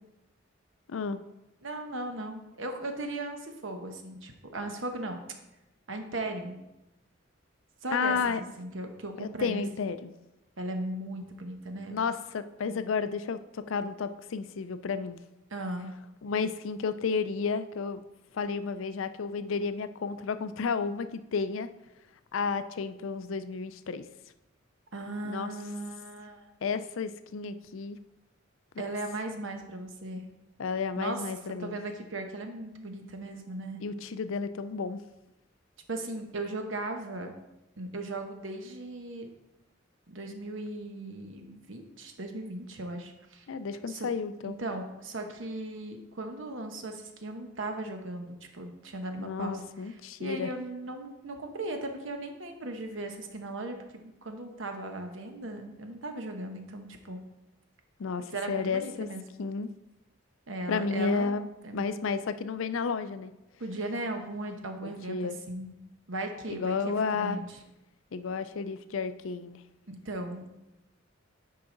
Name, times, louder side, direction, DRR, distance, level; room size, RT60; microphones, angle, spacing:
voice 1, 1.6-5.2 5.9-6.6 7.8-9.6 10.6-12.0 15.5-15.9 24.9-26.5 28.8-30.2 31.0-31.2 31.6-33.8 35.9-37.4 37.8-39.3 40.1-43.5 43.9-44.1 44.4-57.2 58.3-59.2 60.5-61.3 61.6-61.8 63.6-65.2 65.5-65.7 66.1-67.6 69.9-70.5, right 2 dB, 70° right, 5 dB, 1.0 m, -37 dB
voice 2, 7.9-8.4 9.2-10.1 11.9-15.2 16.2-18.0 18.3-21.7 22.3-24.0 25.2-25.5 26.6-28.0 28.8-28.9 30.6-31.8 33.8-35.0 43.5-44.6 49.2-50.5 58.0-59.1 59.4-59.7 60.7-61.5 61.7-63.3 64.8-65.4 66.5-67.4 68.1-69.6, left 5 dB, 75° left, 11 dB, 0.4 m, -32 dB
9.7 x 4.8 x 3.9 m, 0.96 s
head